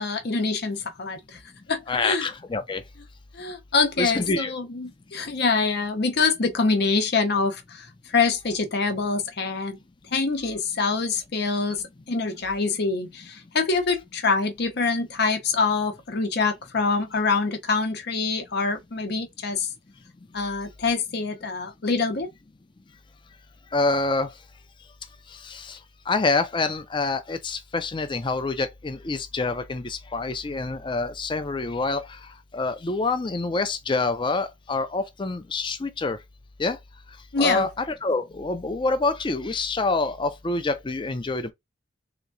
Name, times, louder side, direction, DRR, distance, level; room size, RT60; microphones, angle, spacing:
voice 1, 0.0-1.4 1.7-2.3 3.3-9.8 10.1-19.7 20.3-22.3 37.3-37.7, left 4 dB, 60° left, 0.8 m, -25 dB
voice 2, 1.9-2.8 4.0-4.5 23.7-24.3 25.4-25.8 26.1-32.0 32.5-36.2 36.6-36.8 37.4-41.5, left 3 dB, 25° left, 0.5 m, -26 dB
3.5 x 3.0 x 2.6 m
head